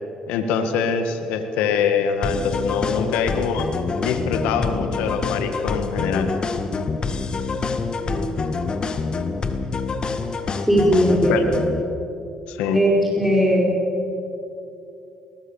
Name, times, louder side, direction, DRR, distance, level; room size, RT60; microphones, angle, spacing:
voice 1, 0.3-3.7 4.0-6.3 11.3-11.4 12.5-12.8, left 6 dB, 80° left, 8 dB, 1.7 m, -24 dB
sound 1, 2.2-11.8, left 4 dB, 40° left, 1.7 m, -26 dB
voice 2, 8.0-8.7 10.6-11.6 12.7-13.7, equal, 5° right, -2 dB, 4.8 m, -19 dB
20.5 x 20.0 x 7.2 m, 2.7 s
supercardioid pair, 65°, 2 cm